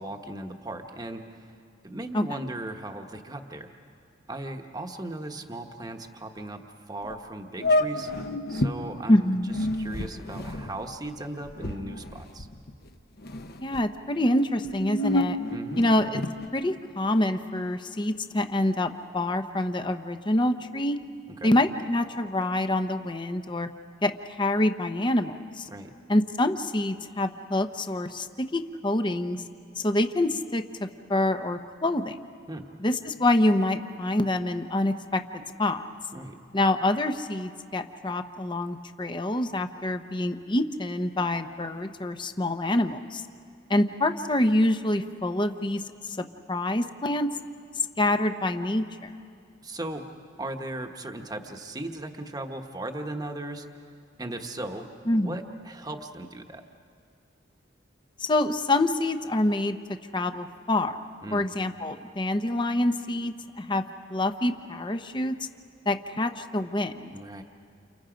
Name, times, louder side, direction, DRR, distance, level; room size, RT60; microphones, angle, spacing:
voice 1, 0.0-1.5 1.8-3.7 4.3-6.6 6.9-8.1 8.5-9.3 9.7-12.5 15.5-15.9 21.3-21.6 25.7-25.9 32.5-32.6 36.1-36.4 49.6-50.0 50.4-53.7 54.2-56.6 61.2-61.4 67.1-67.4, right 1 dB, 20° right, 4 dB, 1.2 m, -37 dB
sound 1, 7.0-7.1 7.6-8.8 9.4-12.9 13.2-13.8 14.5-16.5, left 1 dB, 55° left, 1.1 m, -29 dB
voice 2, 9.1-9.5 13.6-15.4 15.8-16.2 16.5-21.0 21.4-23.7 24.0-25.7 26.1-29.4 29.8-30.6 31.1-32.2 32.8-35.2 35.6-35.8 36.5-43.2 43.7-47.4 48.0-49.1 55.1-55.3 58.2-59.8 60.1-61.0 61.3-63.8 64.1-65.4 65.9-67.1, left 1 dB, 25° left, 8 dB, 0.8 m, -26 dB
30.0 x 29.5 x 5.1 m, 2.3 s
head